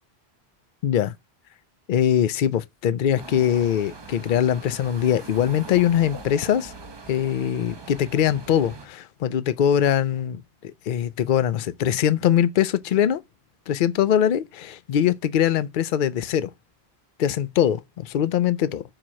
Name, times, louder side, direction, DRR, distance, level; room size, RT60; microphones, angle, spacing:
voice 1, 0.8-1.1 1.9-6.7 7.1-13.2 13.7-16.5 17.2-18.8, left 9 dB, 60° left, 0.7 m, -22 dB
sound 1, 3.2-8.9, right 3 dB, 25° right, 0.7 m, -41 dB
8.8 x 3.0 x 6.2 m
omnidirectional pair, 1.1 m